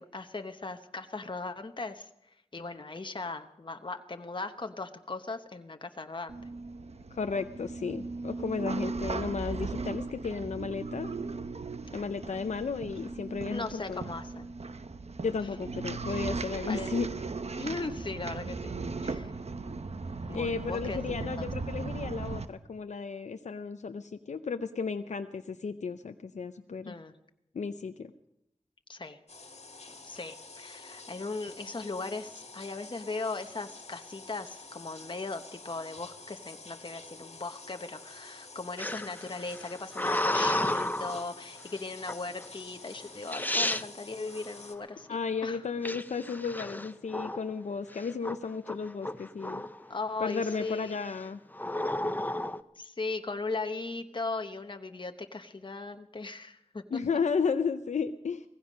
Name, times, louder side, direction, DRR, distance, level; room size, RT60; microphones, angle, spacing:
voice 1, 0.0-2.1 2.5-6.4 13.5-14.5 16.1-16.3 16.7-16.9 17.6-18.7 19.0-19.3 20.3-21.5 26.9-27.1 28.9-29.2 30.0-45.1 45.4-45.6 49.9-51.0 52.8-57.2, left 3 dB, 45° left, 6 dB, 1.0 m, -38 dB
sound 1, 6.3-22.4, right 3 dB, 65° right, 0.9 m, -37 dB
voice 2, 7.1-11.1 11.9-14.0 15.2-17.1 20.3-27.0 27.5-28.1 45.1-49.6 50.2-51.4 56.9-58.4, left 5 dB, 85° left, 8 dB, 0.6 m, -33 dB
sound 2, 29.3-44.8, left 3 dB, 65° left, 1.9 m, -49 dB
sound 3, 38.8-41.3 42.1-42.4 43.0-43.1 43.3-43.8 45.8-47.5 47.9-48.4 48.7-49.8 50.3-50.7 51.5-52.6, left 1 dB, 15° left, 0.7 m, -32 dB
18.0 x 15.5 x 5.2 m, 0.82 s
wide cardioid pair, 55°, 12 cm